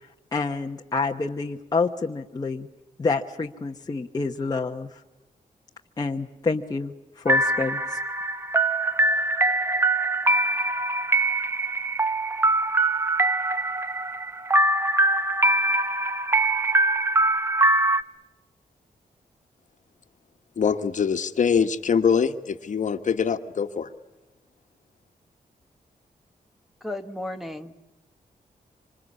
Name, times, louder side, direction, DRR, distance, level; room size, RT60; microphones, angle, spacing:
voice 1, 0.0-2.7 3.0-5.0 6.0-8.0, left 4 dB, 25° left, 1 dB, 1.1 m, -28 dB
sound 1, 7.3-18.0, right 2 dB, 15° right, 0.9 m, -23 dB
voice 2, 20.6-23.9, left 6 dB, 55° left, 8 dB, 1.5 m, -23 dB
voice 3, 26.8-27.7, left 1 dB, ahead, 4 dB, 1.2 m, -34 dB
26.5 x 26.0 x 8.5 m, 1.0 s
wide cardioid pair, 170°, 15 cm